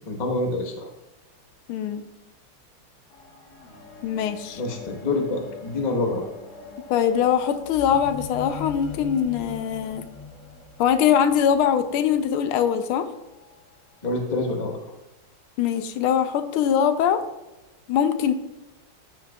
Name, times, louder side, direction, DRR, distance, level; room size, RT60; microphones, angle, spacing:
voice 1, 0.1-0.9 4.6-6.3 14.0-14.8, left 2 dB, 30° left, 1 dB, 0.9 m, -26 dB
voice 2, 1.7-2.1 4.0-4.6 6.9-10.1 10.8-13.1 15.6-17.2 17.9-18.3, left 8 dB, 85° left, 10 dB, 1.5 m, -22 dB
sound 1, 3.1-12.6 13.4-13.5, left 4 dB, 55° left, 1.9 m, -41 dB
13.0 x 6.3 x 2.3 m, 1.1 s
omnidirectional pair, 2.3 m